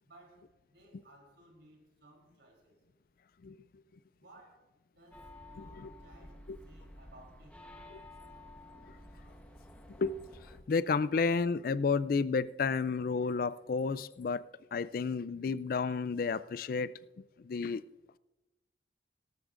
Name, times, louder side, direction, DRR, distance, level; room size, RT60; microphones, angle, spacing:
voice 1, 0.0-2.8 4.2-7.6, right 1 dB, 75° right, 3.4 m, -60 dB
sound 1, 5.1-10.6, left 1 dB, 10° left, 1.0 m, -52 dB
voice 2, 5.6-5.9 7.9-8.0 10.0-10.2 10.5-14.4 14.7-16.9 17.4-17.8, left 5 dB, 50° left, 0.3 m, -31 dB
18.0 x 13.5 x 2.5 m
head